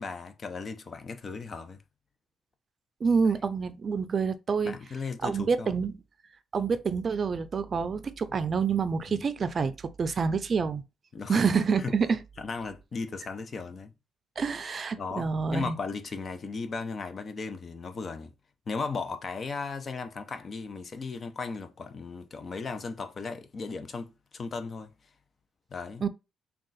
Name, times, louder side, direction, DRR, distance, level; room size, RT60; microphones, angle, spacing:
voice 1, 0.0-1.8 4.6-5.7 9.1-9.2 11.1-11.4 11.8-11.9 12.4-13.9 15.0-18.3 18.7-24.9 25.7-26.0, left 4 dB, 40° left, 0.6 m, -36 dB
voice 2, 3.0-4.8 5.2-5.9 6.5-10.8 11.3-12.2 14.4-15.8 26.0-26.1, right 5 dB, 45° right, 0.4 m, -27 dB
3.7 x 2.3 x 4.0 m
cardioid pair, 90°, 0 cm